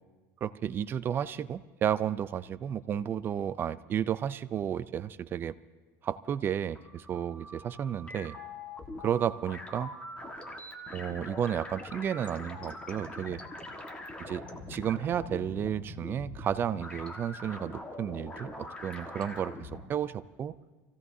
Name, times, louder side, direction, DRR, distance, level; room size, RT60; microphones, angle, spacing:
voice 1, 0.4-5.5 6.0-8.4 9.0-9.9 10.9-13.4 14.2-14.4 14.7-20.6, right 9 dB, 30° right, 15 dB, 0.4 m, -32 dB
sound 1, 6.6-19.8, left 1 dB, 15° left, 1.5 m, -43 dB
27.5 x 16.0 x 2.7 m, 1.3 s
cardioid pair, 140°, 7 cm